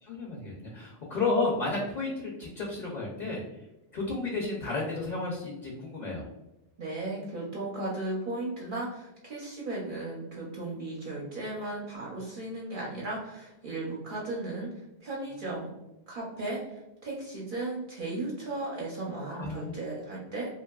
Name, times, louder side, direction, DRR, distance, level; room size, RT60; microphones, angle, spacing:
voice 1, 0.0-3.4 3.9-6.3 15.4-15.6 19.3-19.7, left 3 dB, 55° left, -2 dB, 0.6 m, -32 dB
voice 2, 6.8-14.7 15.0-15.7 16.1-20.5, right 2 dB, 60° right, -4 dB, 0.7 m, -36 dB
2.7 x 2.3 x 2.2 m, 0.94 s
omnidirectional pair, 1.0 m